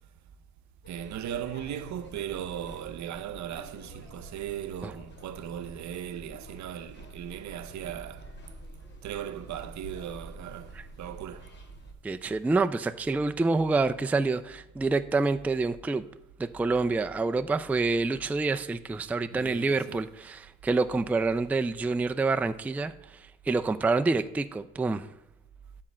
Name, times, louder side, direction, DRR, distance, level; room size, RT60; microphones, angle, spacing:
sound 1, 0.8-11.9, equal, 35° left, 1.6 m, -48 dB
voice 1, 0.9-8.4 9.0-11.5 19.3-20.1, right 10 dB, 70° right, 0.7 m, -38 dB
voice 2, 12.0-16.0 16.4-22.9 23.5-25.1, right 3 dB, 5° right, 0.3 m, -27 dB
9.7 x 4.4 x 7.3 m
cardioid pair, 90°, 30 cm